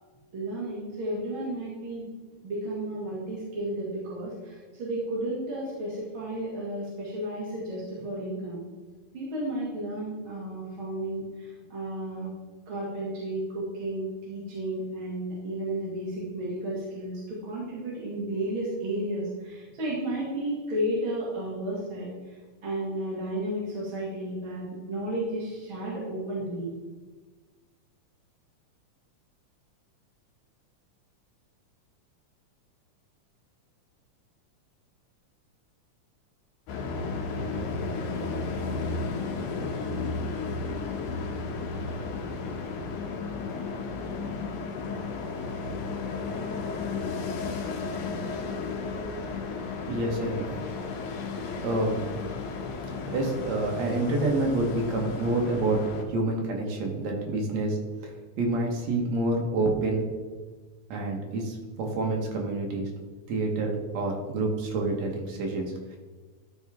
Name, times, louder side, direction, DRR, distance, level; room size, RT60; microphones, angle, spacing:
voice 1, 0.3-2.1 2.4-8.6 9.1-12.3 12.7-26.7, right 1 dB, 45° right, -7 dB, 2.4 m, -33 dB
sound 1, 36.7-56.1, left 4 dB, 90° left, 2.4 m, -33 dB
voice 2, 37.3-37.8 49.9-50.6 51.6-52.1 53.1-57.8 58.4-60.1 60.9-62.9 63.3-66.0, right 2 dB, 65° right, 0 dB, 2.4 m, -28 dB
12.5 x 4.5 x 3.5 m, 1.4 s
omnidirectional pair, 3.5 m